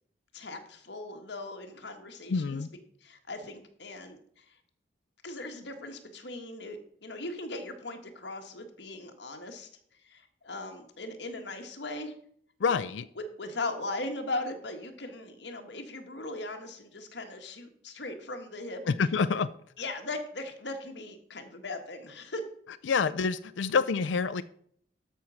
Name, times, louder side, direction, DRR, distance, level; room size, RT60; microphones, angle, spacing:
voice 1, 0.3-2.6 3.0-4.4 5.2-9.7 10.0-12.1 13.2-18.8 19.8-22.4, left 2 dB, 75° left, 4 dB, 1.6 m, -39 dB
voice 2, 2.3-2.7 12.6-13.0 18.9-19.5 22.9-24.4, left 5 dB, 90° left, 13 dB, 0.4 m, -27 dB
13.0 x 4.6 x 6.3 m, 0.63 s
head